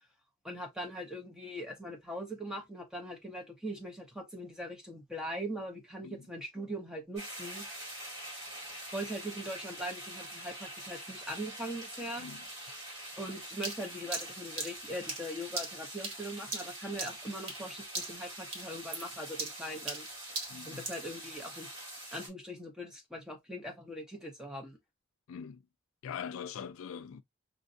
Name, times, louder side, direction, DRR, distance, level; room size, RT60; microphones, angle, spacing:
voice 1, 0.4-7.7 8.9-12.2 13.2-20.1 20.7-21.7 22.1-24.8, equal, 5° right, 0.8 m, -41 dB
sound 1, 7.2-22.3, right 1 dB, 30° right, 2.5 m, -45 dB
voice 2, 12.2-12.5 20.5-20.8 25.3-25.6 26.0-27.2, left 7 dB, 75° left, 0.4 m, -42 dB
sound 2, 13.6-17.7 17.9-18.3 18.5-21.1, right 3 dB, 70° right, 1.7 m, -39 dB
5.1 x 2.5 x 2.5 m
head